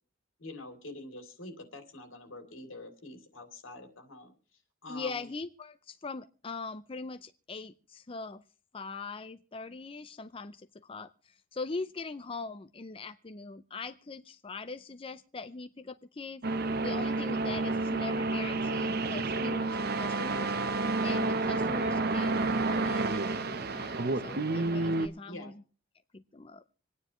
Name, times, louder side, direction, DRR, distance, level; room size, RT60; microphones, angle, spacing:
voice 1, 0.4-4.3 4.8-5.3 25.3-25.5, left 2 dB, 90° left, 6 dB, 3.0 m, -46 dB
voice 2, 4.9-8.4 8.7-16.4 16.8-20.5 21.0-25.5 26.1-26.6, left 4 dB, 30° left, 10 dB, 0.5 m, -42 dB
sound 1, 16.4-25.1, right 3 dB, 50° right, 0.9 m, -30 dB
26.0 x 9.6 x 3.1 m, 0.38 s
head